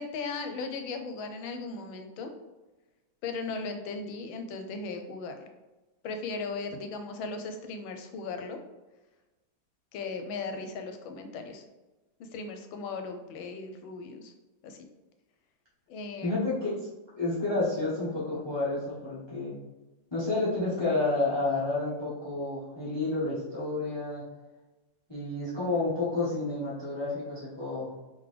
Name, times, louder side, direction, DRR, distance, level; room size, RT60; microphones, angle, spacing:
voice 1, 0.0-2.3 3.2-5.5 6.0-8.6 9.9-11.6 12.2-14.3 14.6-14.8 15.9-16.4, left 4 dB, 80° left, 6 dB, 1.4 m, -37 dB
voice 2, 16.2-16.9 17.2-19.5 20.1-24.2 25.1-28.1, left 2 dB, 20° left, -7 dB, 0.7 m, -30 dB
3.7 x 3.5 x 3.3 m, 1.1 s
omnidirectional pair, 2.2 m